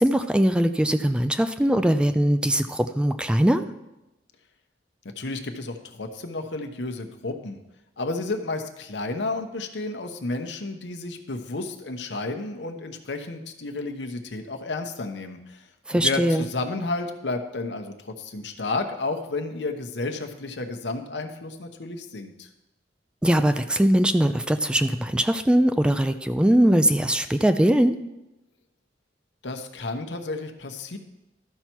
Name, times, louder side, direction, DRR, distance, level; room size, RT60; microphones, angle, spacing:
voice 1, 0.0-3.6 15.9-16.5 23.2-28.0, right 1 dB, 5° right, 9 dB, 0.3 m, -21 dB
voice 2, 5.2-7.6 8.0-22.5 29.4-31.0, left 3 dB, 80° left, 5 dB, 0.9 m, -32 dB
12.5 x 5.7 x 4.5 m, 0.95 s
head